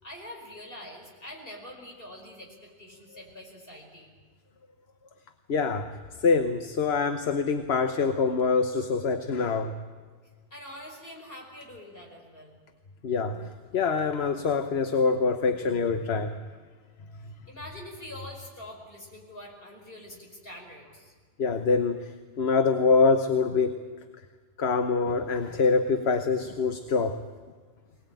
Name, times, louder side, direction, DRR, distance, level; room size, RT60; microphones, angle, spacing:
voice 1, 0.0-4.1 10.5-12.6 17.5-21.1, left 1 dB, 65° left, 0 dB, 5.6 m, -44 dB
voice 2, 5.5-9.7 13.0-16.4 21.4-23.8 24.6-27.2, left 4 dB, 85° left, 8 dB, 1.3 m, -25 dB
23.5 x 19.0 x 9.1 m, 1.5 s
omnidirectional pair, 1.0 m